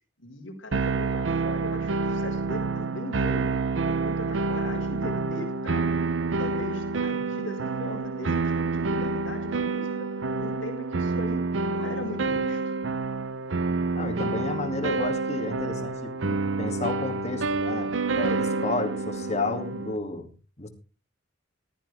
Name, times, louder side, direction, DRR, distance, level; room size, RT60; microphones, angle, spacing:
voice 1, 0.2-3.5 3.9-5.9 6.4-12.7, left 1 dB, 80° left, 3 dB, 4.6 m, -39 dB
sound 1, 0.7-20.0, right 3 dB, 70° right, 0.7 m, -28 dB
voice 2, 13.9-20.3 20.6-20.7, left 2 dB, 35° left, 6 dB, 2.5 m, -32 dB
15.5 x 13.0 x 3.5 m, 0.33 s
head